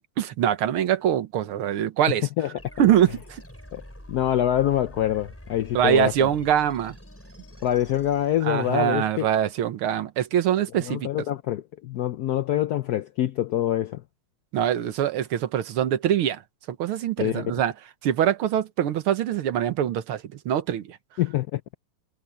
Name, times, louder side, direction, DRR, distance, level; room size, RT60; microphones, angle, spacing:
voice 1, 0.0-2.3 2.8-3.4 5.7-7.0 8.4-11.1 14.5-16.4 16.7-17.7 18.0-21.0, right 10 dB, 80° right, 2.0 m, -23 dB
sound 1, 2.6-9.0, equal, 5° left, 4.5 m, -46 dB
voice 2, 4.1-6.3 7.6-9.3 10.9-14.0 17.2-17.5 21.2-21.6, left 12 dB, 80° left, 0.8 m, -25 dB
omnidirectional pair, 2.3 m